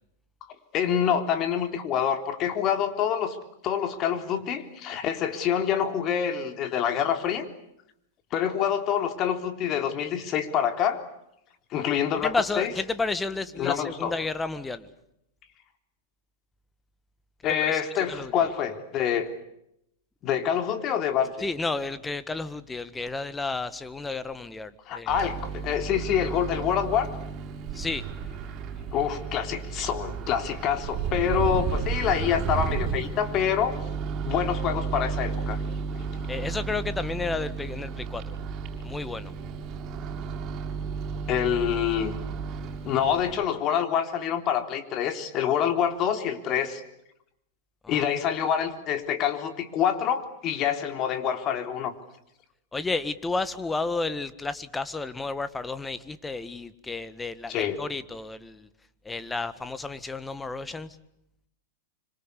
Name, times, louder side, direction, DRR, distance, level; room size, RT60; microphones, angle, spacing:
voice 1, 0.7-3.4 3.6-7.5 8.3-11.0 11.7-12.7 13.6-14.1 17.4-19.3 20.2-21.3 24.9-27.1 28.9-33.8 34.2-35.6 41.3-42.2 42.8-46.8 47.9-51.9 57.5-57.8, left 9 dB, 40° left, 8 dB, 3.7 m, -26 dB
voice 2, 12.2-14.9 17.7-18.5 21.4-25.3 27.7-28.0 36.3-38.4 38.8-39.3 47.8-48.0 52.7-58.7 59.0-61.0, left 3 dB, 10° left, 14 dB, 1.7 m, -32 dB
Microwave oven, 25.1-43.4, right 6 dB, 35° right, 7.3 m, -33 dB
26.0 x 25.5 x 8.4 m, 0.79 s
hypercardioid pair, 105°, 0 cm